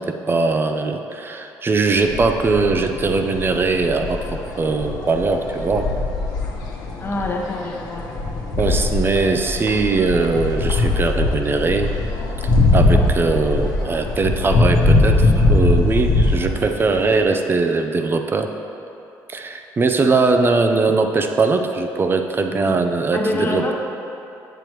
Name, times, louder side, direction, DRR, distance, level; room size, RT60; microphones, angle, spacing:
voice 1, 0.0-5.9 8.6-11.9 12.4-18.5 19.3-23.6, right 3 dB, 30° right, 5 dB, 0.5 m, -20 dB
sound 1, 1.9-17.2, left 2 dB, 65° left, 1.1 m, -21 dB
voice 2, 7.0-8.1 20.0-20.1 22.5-22.7 23.1-23.7, left 2 dB, 30° left, 0 dB, 1.0 m, -26 dB
7.4 x 6.9 x 3.1 m, 2.9 s
cardioid pair, 90°, 7 cm